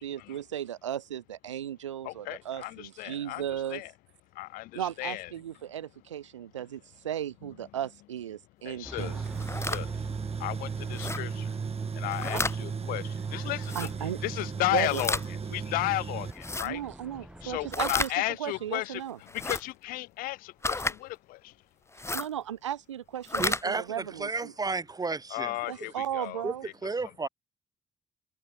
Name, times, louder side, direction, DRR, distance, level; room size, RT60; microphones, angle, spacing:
voice 1, 0.0-3.8 4.7-9.2 12.3-12.4 12.8-12.9 13.7-14.2 14.7-15.0 16.6-18.1 18.4-19.2 22.0-24.5 25.7-26.7, right 10 dB, 90° right, 0.9 m, -36 dB
voice 2, 2.0-3.4 3.7-3.9 4.3-5.3 8.6-9.1 9.6-10.0 10.4-11.6 11.9-13.9 14.2-15.2 15.5-16.8 17.4-19.0 19.3-21.5 25.3-26.7 27.2-27.3, left 19 dB, 70° left, 2.7 m, -34 dB
sound 1, 8.8-17.9, right 1 dB, 5° right, 3.4 m, -47 dB
Tools, 9.0-16.3, right 6 dB, 40° right, 4.5 m, -35 dB
sound 2, 9.3-9.8 10.9-11.2 12.0-12.6 13.6-13.9 14.8-15.3 16.3-16.7 17.7-18.1 19.3-19.6 20.6-21.0 21.9-22.3 23.2-23.6, left 2 dB, 20° left, 1.7 m, -31 dB
voice 3, 23.4-25.9 26.4-26.5 26.8-27.3, right 4 dB, 25° right, 1.0 m, -33 dB
hypercardioid pair, 45°, 15 cm